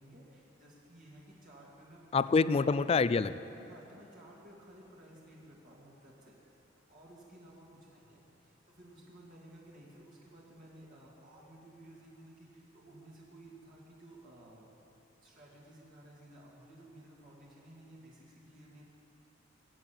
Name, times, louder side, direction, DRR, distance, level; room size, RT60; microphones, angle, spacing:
voice 1, 0.0-2.4 3.7-6.3 6.9-14.7 15.2-18.8, right 1 dB, 45° right, -5 dB, 2.5 m, -55 dB
voice 2, 2.1-3.4, left 4 dB, 30° left, 15 dB, 0.3 m, -26 dB
22.5 x 7.6 x 8.5 m, 2.8 s
head